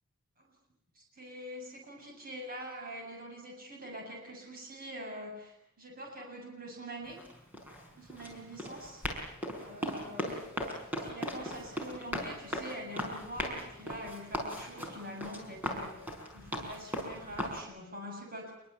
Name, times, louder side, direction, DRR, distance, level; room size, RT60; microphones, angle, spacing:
voice 1, 0.9-7.2 8.0-9.0 9.6-10.4 11.0-18.5, equal, 40° right, 1 dB, 7.6 m, -44 dB
Run, 7.1-17.6, equal, 10° right, 5.4 m, -38 dB
27.0 x 22.5 x 8.3 m, 0.80 s
head